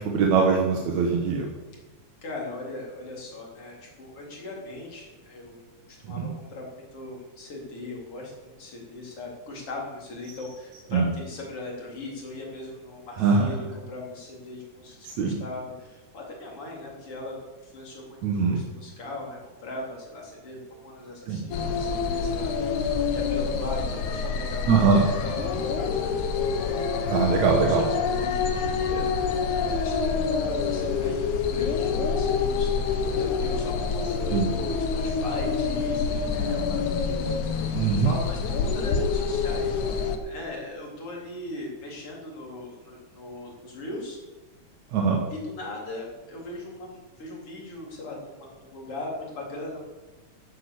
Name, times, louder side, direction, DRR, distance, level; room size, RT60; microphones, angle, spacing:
voice 1, 0.0-1.5 6.1-6.3 10.9-11.0 13.2-13.5 15.0-15.4 18.2-18.6 21.3-21.4 24.7-25.0 27.1-27.8 34.3-34.5 37.7-38.1 44.9-45.2, right 5 dB, 75° right, 0 dB, 2.7 m, -22 dB
voice 2, 2.2-5.6 5.9-17.4 17.6-24.6 25.1-26.1 27.3-44.2 45.3-49.9, left 2 dB, 50° left, -2 dB, 4.5 m, -39 dB
sound 1, 21.5-40.2, left 5 dB, 85° left, 2.7 m, -27 dB
15.0 x 8.6 x 7.1 m, 1.2 s
omnidirectional pair, 3.3 m